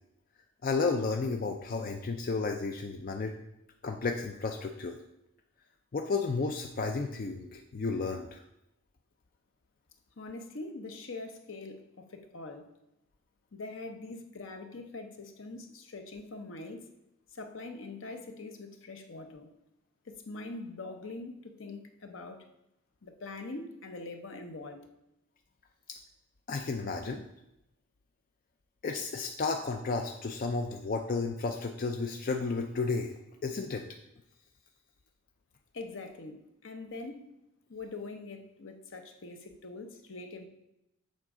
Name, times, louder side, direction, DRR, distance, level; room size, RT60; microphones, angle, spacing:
voice 1, 0.6-3.4 3.8-5.0 5.9-8.4 26.5-27.2 28.8-33.1 33.4-33.9, left 4 dB, 45° left, 3 dB, 0.4 m, -32 dB
voice 2, 10.2-12.7 13.5-16.9 17.3-19.5 20.1-22.5 23.0-24.8 35.7-37.2 37.7-40.5, left 3 dB, 70° left, 6 dB, 0.8 m, -43 dB
7.4 x 3.8 x 4.9 m, 0.86 s
head